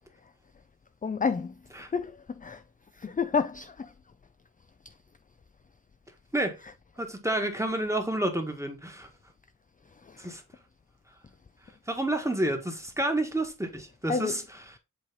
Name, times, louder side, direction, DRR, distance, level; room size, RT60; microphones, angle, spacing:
voice 1, 1.0-1.6 1.9-2.6 2.9-3.9 6.6-6.8 10.0-10.4 14.1-14.5, left 5 dB, 25° left, 0.4 m, -30 dB
voice 2, 7.0-9.1 10.2-10.4 11.9-14.4, right 1 dB, 10° right, 1.5 m, -29 dB
7.9 x 3.2 x 4.0 m
wide cardioid pair, 90°, 34 cm